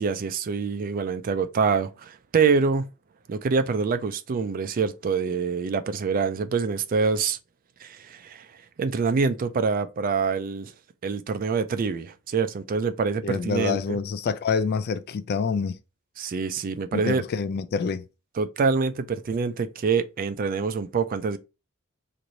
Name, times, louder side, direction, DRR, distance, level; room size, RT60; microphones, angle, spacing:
voice 1, 0.0-2.9 3.3-7.4 7.8-8.5 8.8-10.7 11.0-14.0 16.2-17.2 18.4-21.4, right 5 dB, 40° right, 0.3 m, -25 dB
voice 2, 13.2-15.8 16.9-18.0, left 5 dB, 45° left, 0.3 m, -27 dB
3.1 x 2.5 x 3.9 m
head